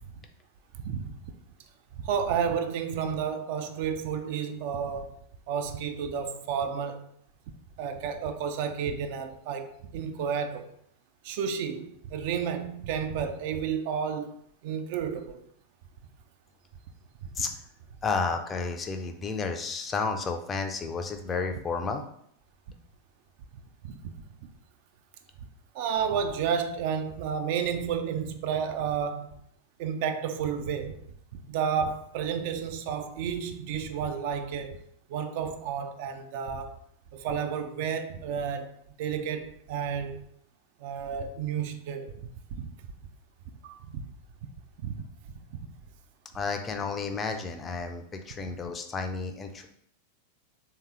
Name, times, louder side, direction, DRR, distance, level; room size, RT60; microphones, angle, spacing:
voice 1, 0.7-1.1 1.9-5.2 5.5-7.0 7.8-10.7 11.2-14.3 14.6-15.4 23.9-24.1 25.7-29.3 29.8-31.0 31.3-34.8 35.1-36.8 37.1-38.7 39.0-40.2 40.8-42.1 42.5-42.7 43.6-44.0 44.8-45.0, right 7 dB, 50° right, 0.4 m, -31 dB
voice 2, 18.0-22.0 46.3-49.7, left 4 dB, 20° left, 0.4 m, -31 dB
3.4 x 2.8 x 3.3 m
figure-of-eight pair, 90°, 0 cm